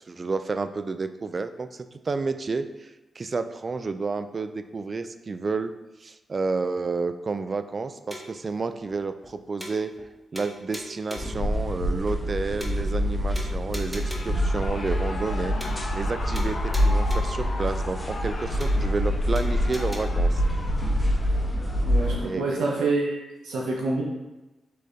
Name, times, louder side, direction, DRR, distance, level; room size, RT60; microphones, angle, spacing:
voice 1, 0.0-5.7 6.0-9.9 10.3-20.4 22.2-22.9, right 4 dB, 45° right, 10 dB, 0.3 m, -30 dB
sound 1, 8.1-8.4 8.9-9.0 9.2-9.3 9.6-10.1 10.4-11.4 11.9-12.0 12.2-12.3 12.6-13.1 13.4-14.4 14.9-15.0 15.2-15.3 15.6-16.1 16.4-17.4 17.9-18.0 18.2-18.3 18.6-19.1 19.4-20.0, equal, 5° right, 0.8 m, -40 dB
sound 2, 11.2-22.2, equal, 15° left, 1.1 m, -26 dB
Shout / Cheering, 13.7-22.6, left 2 dB, 60° left, 0.6 m, -39 dB
voice 2, 21.8-24.0, right 3 dB, 85° right, -3 dB, 0.7 m, -28 dB
3.9 x 3.2 x 3.8 m, 1.1 s
cardioid pair, 55°, 0 cm